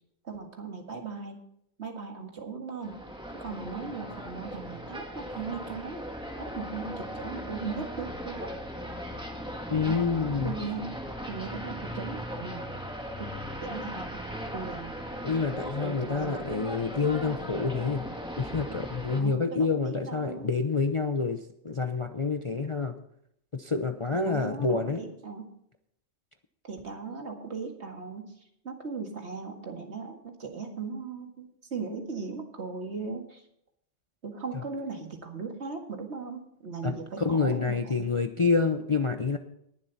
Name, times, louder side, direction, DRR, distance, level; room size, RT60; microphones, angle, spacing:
voice 1, 0.2-1.4 1.8-3.0 3.4-6.1 6.4-8.5 9.7-10.0 10.4-10.9 11.3-12.8 13.2-13.4 13.6-14.9 15.8-16.5 19.1-20.5 24.1-25.5 26.6-28.3 28.6-33.4 34.2-38.1, right 5 dB, 60° right, 3 dB, 2.1 m, -38 dB
sound 1, 2.8-19.2, equal, 5° right, 1.7 m, -38 dB
voice 2, 9.7-10.5 15.2-18.0 18.4-22.9 23.5-25.0 36.8-36.9 37.2-39.4, left 4 dB, 30° left, 6 dB, 0.7 m, -28 dB
19.5 x 7.5 x 4.1 m, 0.73 s
omnidirectional pair, 1.3 m